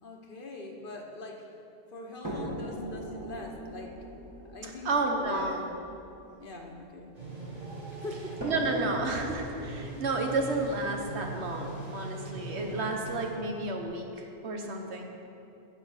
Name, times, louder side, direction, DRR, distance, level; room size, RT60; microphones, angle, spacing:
voice 1, 0.0-1.6 1.9-4.0 4.5-5.5 6.4-7.1 7.9-8.4, left 2 dB, 55° left, 2 dB, 1.4 m, -43 dB
sound 1, 2.2-7.5 8.4-12.4 13.3-13.4 13.9-14.0, right 1 dB, 15° right, 1.6 m, -42 dB
voice 2, 4.6-5.7 8.4-15.1, right 2 dB, 85° right, 2 dB, 1.6 m, -31 dB
sound 2, 7.1-13.3, right 2 dB, 35° right, 2.9 m, -41 dB
sound 3, 7.5-9.4 10.7-11.7, right 2 dB, 65° right, 1.8 m, -53 dB
16.0 x 6.0 x 6.6 m, 2.7 s
omnidirectional pair, 1.1 m